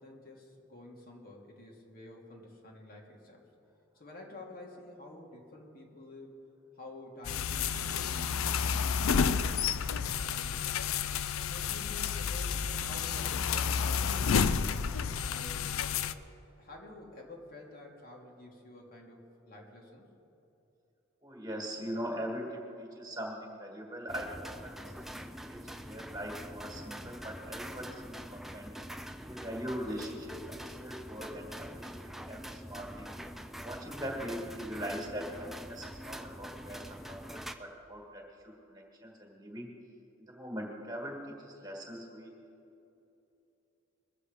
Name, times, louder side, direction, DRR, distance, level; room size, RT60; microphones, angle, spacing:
voice 1, 0.0-3.5 3.9-6.5 6.7-10.8 11.3-14.4 14.7-16.1 16.6-20.1, left 2 dB, 45° left, -1 dB, 1.8 m, -50 dB
sound 1, 7.2-16.1, left 6 dB, 80° left, 0.5 m, -30 dB
voice 2, 21.2-25.6 25.9-28.7 29.3-33.1 33.6-39.7 40.2-42.3, equal, 20° right, 0 dB, 2.0 m, -41 dB
sound 2, 24.1-37.5, equal, ahead, 0.4 m, -45 dB
21.5 x 7.6 x 5.0 m, 2.9 s
head